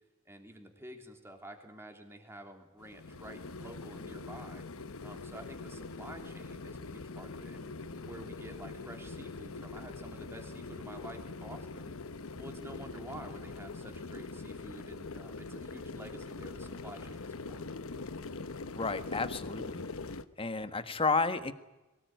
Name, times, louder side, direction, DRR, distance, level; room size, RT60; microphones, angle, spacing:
voice 1, 0.2-4.6 5.0-7.7 8.0-11.9 12.4-17.7, right 1 dB, 10° right, 4 dB, 3.3 m, -49 dB
sound 1, 2.8-20.2, left 3 dB, 75° left, 1.1 m, -43 dB
voice 2, 18.7-19.9 20.4-21.5, left 4 dB, 25° left, 10 dB, 1.5 m, -31 dB
23.0 x 19.0 x 9.4 m, 1.1 s
head